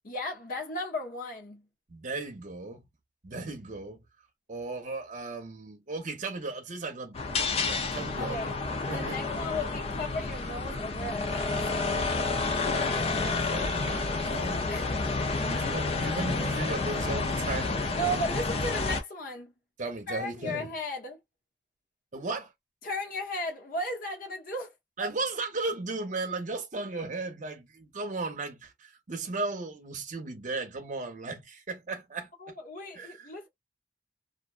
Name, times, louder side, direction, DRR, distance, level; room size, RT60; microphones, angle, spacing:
voice 1, 0.0-1.7 8.2-8.5 8.9-11.6 14.7-15.0 17.9-19.5 20.1-21.2 22.8-24.7 25.0-25.1 32.4-33.5, left 1 dB, 55° left, 0.9 m, -35 dB
voice 2, 1.9-2.8 3.2-4.0 4.5-8.6 8.9-9.2 12.9-14.6 15.3-18.3 19.8-20.7 22.1-22.5 25.0-32.6 32.9-33.3, right 3 dB, 45° right, 0.7 m, -36 dB
sound 1, 7.1-19.0, left 3 dB, 35° left, 0.5 m, -30 dB
2.5 x 2.2 x 2.3 m
head